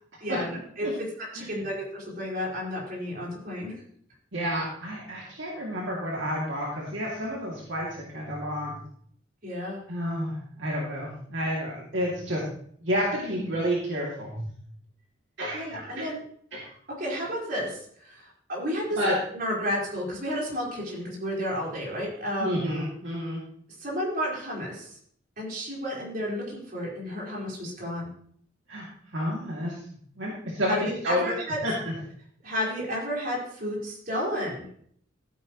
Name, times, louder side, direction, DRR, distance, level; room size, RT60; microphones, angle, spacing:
voice 1, 0.2-0.9 1.2-3.7 9.4-9.8 15.5-16.2 17.0-22.6 23.8-24.9 25.4-28.1 30.6-31.6 32.4-34.6, equal, 50° right, -4 dB, 4.6 m, -32 dB
voice 2, 4.3-8.8 9.9-12.4 12.8-14.5 15.4-16.0 19.0-19.1 22.4-23.4 28.7-28.9 29.1-29.7 30.2-31.3 31.6-31.9, equal, 75° right, -4 dB, 2.6 m, -30 dB
14.5 x 9.4 x 3.1 m, 0.63 s
head